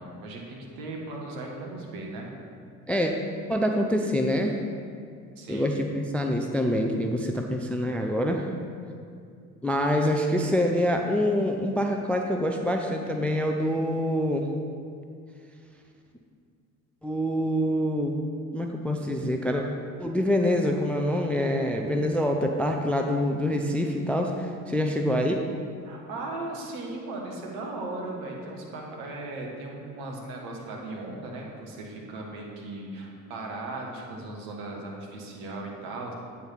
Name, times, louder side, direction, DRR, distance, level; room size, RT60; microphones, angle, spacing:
voice 1, 0.0-2.3 5.4-5.7 25.8-36.1, right 2 dB, 65° right, -1 dB, 1.5 m, -37 dB
voice 2, 3.5-4.6 5.5-8.5 9.6-14.5 17.0-18.1 18.5-19.6 20.0-25.4, equal, 5° left, 3 dB, 0.4 m, -25 dB
8.5 x 4.1 x 5.8 m, 2.3 s
figure-of-eight pair, 55°, 44 cm